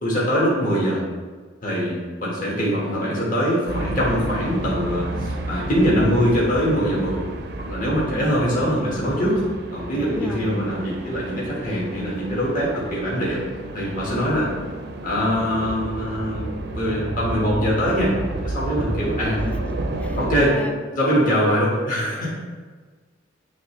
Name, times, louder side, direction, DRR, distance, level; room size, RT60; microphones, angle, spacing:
voice 1, 0.0-1.0 1.6-7.2 7.7-9.4 9.7-13.4 13.7-14.5 15.0-18.1 18.4-19.4 20.2-20.6 20.9-22.3, equal, 45° left, -6 dB, 1.5 m, -23 dB
sound 1, 3.7-20.5, right 2 dB, 60° right, 0.5 m, -31 dB
voice 2, 8.1-8.8 9.9-10.8 19.4-20.2 20.5-20.7, left 1 dB, 5° left, 3 dB, 0.3 m, -35 dB
9.2 x 3.2 x 3.1 m, 1.4 s
head